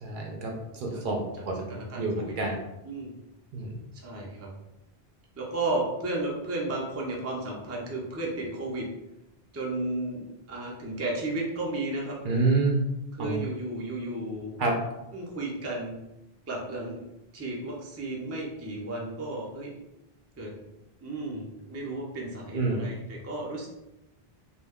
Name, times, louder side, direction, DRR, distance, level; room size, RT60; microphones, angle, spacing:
voice 1, 0.0-2.6 3.5-3.8 12.2-12.8 13.2-13.4 14.6-14.8 22.5-22.9, right 3 dB, 60° right, 1 dB, 0.6 m, -28 dB
voice 2, 1.7-2.6 2.8-3.1 3.9-4.5 5.4-8.9 9.5-12.4 13.1-14.6 15.1-16.0 16.5-17.1 17.3-19.7 20.4-20.5 21.0-23.7, right 2 dB, 25° right, -3 dB, 0.3 m, -33 dB
2.2 x 2.2 x 3.4 m, 0.92 s
omnidirectional pair, 1.0 m